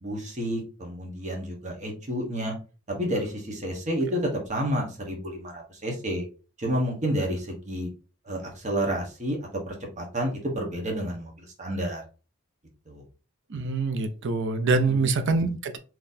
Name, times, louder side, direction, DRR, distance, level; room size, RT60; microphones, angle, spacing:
voice 1, 0.0-2.5 2.9-6.2 6.6-7.9 8.2-9.4 9.7-12.0 12.9-13.0 14.9-15.0, equal, 35° right, 1.1 m, -30 dB
voice 2, 13.5-15.8, right 3 dB, 60° right, 0.5 m, -25 dB
3.9 x 3.0 x 2.6 m
head